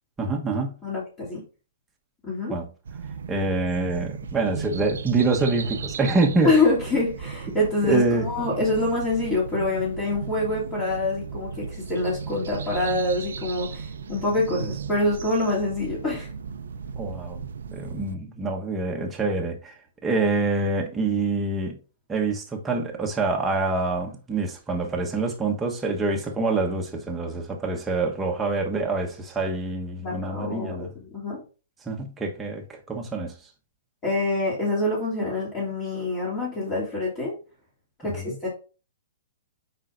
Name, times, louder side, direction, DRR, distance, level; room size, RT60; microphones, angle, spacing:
voice 1, 0.2-0.8 2.5-2.7 3.3-6.5 7.8-8.2 17.0-17.4 17.7-21.8 22.1-30.9 31.8-33.3 38.0-38.4, right 3 dB, 10° right, 1.2 m, -26 dB
voice 2, 0.8-1.4 2.2-2.6 6.4-16.3 30.0-31.4 34.0-37.3 38.0-38.5, left 2 dB, 25° left, 2.8 m, -26 dB
sound 1, 2.8-18.2, right 6 dB, 85° right, 0.6 m, -36 dB
7.3 x 5.2 x 2.6 m
hypercardioid pair, 145°, 0 cm